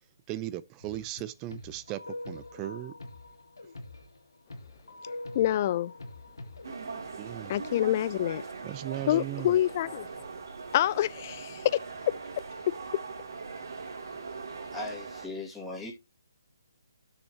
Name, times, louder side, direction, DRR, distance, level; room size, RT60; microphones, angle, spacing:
voice 1, 0.3-3.0 7.2-7.5 8.6-9.6, right 15 dB, 20° right, 0.6 m, -37 dB
sound 1, 0.8-1.2 1.5-6.7, left 2 dB, 85° left, 2.1 m, -44 dB
voice 2, 5.3-5.9 7.5-8.4 9.1-10.1 10.7-11.8 12.7-12.8, left 12 dB, 35° left, 0.4 m, -26 dB
sound 2, 6.6-15.3, right 4 dB, 70° right, 2.9 m, -41 dB
voice 3, 14.7-15.9, left 2 dB, 5° left, 2.2 m, -38 dB
13.5 x 6.6 x 2.9 m
figure-of-eight pair, 150°, 2 cm